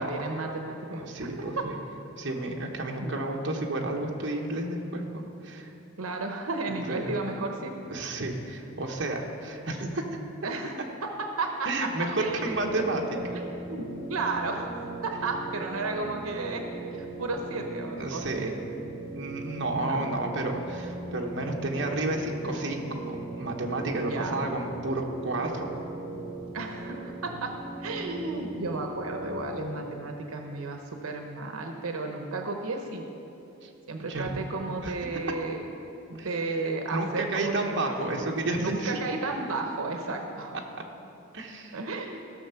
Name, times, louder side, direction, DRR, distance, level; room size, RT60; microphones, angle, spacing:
voice 1, 0.0-1.6 3.0-3.3 6.0-7.7 10.4-10.7 11.0-11.1 11.4-11.9 12.2-12.9 13.3-14.7 15.0-16.6 17.0-18.5 19.8-20.0 23.9-24.4 26.5-27.5 27.8-33.0 33.9-35.6 36.1-37.8 38.2-38.3 38.6-40.5 41.7-42.3, right 3 dB, 85° right, 3 dB, 0.8 m, -33 dB
voice 2, 1.0-1.8 2.2-5.7 6.9-7.1 7.9-10.0 11.6-13.0 18.0-18.5 19.1-25.7 33.6-33.7 34.0-34.3 34.8-34.9 36.2-39.0 41.3-41.8, right 2 dB, 55° right, 0 dB, 1.1 m, -31 dB
sound 1, 12.3-29.9, right 2 dB, 40° right, 3.1 m, -39 dB
15.0 x 6.6 x 5.7 m, 2.9 s
head